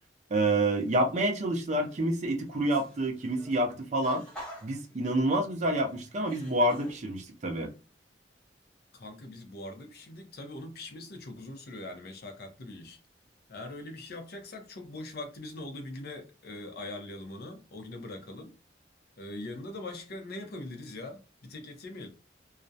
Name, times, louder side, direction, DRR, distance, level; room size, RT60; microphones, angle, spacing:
voice 1, 0.3-4.2 4.6-7.7, right 1 dB, 40° right, 0.5 m, -28 dB
sound 1, 0.8-1.4 1.8-6.9, equal, 5° left, 0.7 m, -50 dB
voice 2, 8.9-13.0 13.5-18.5 19.2-22.1, left 2 dB, 55° left, 0.5 m, -42 dB
2.3 x 2.0 x 2.6 m
head